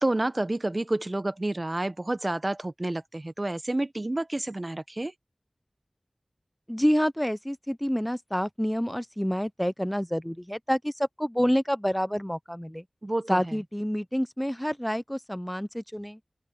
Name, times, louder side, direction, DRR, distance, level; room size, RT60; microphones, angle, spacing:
voice 1, 0.0-5.1 13.0-13.6, right 2 dB, 40° right, 0.9 m, -29 dB
voice 2, 6.7-12.8 13.3-16.2, equal, 5° left, 0.6 m, -28 dB
open air
wide cardioid pair, 50°, 0 cm